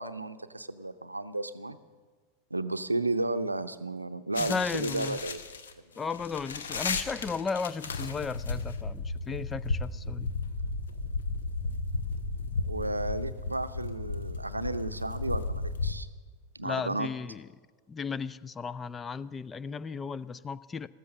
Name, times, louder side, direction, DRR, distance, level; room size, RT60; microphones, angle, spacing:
voice 1, 0.0-1.8 2.5-5.4 12.6-16.1 16.5-17.1, right 2 dB, 85° right, 11 dB, 0.7 m, -33 dB
sound 1, 4.4-15.9, left 3 dB, 65° left, 1.1 m, -34 dB
voice 2, 4.4-5.2 6.0-10.3 16.6-17.5 17.9-20.9, left 5 dB, 15° left, 17 dB, 0.5 m, -35 dB
14.5 x 13.5 x 6.5 m, 1.4 s
figure-of-eight pair, 90°, 0 cm